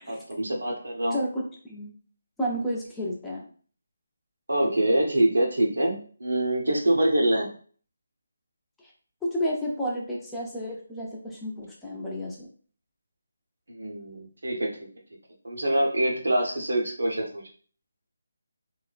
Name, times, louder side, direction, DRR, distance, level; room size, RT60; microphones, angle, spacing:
voice 1, 0.1-1.2 4.5-7.5 13.7-14.9 15.4-17.4, right 1 dB, 80° right, -1 dB, 0.9 m, -25 dB
voice 2, 1.1-1.9 2.4-3.5 8.8-8.9 9.2-12.5, equal, 5° left, -5 dB, 0.6 m, -31 dB
3.0 x 2.1 x 2.5 m, 0.43 s
figure-of-eight pair, 155°, 0 cm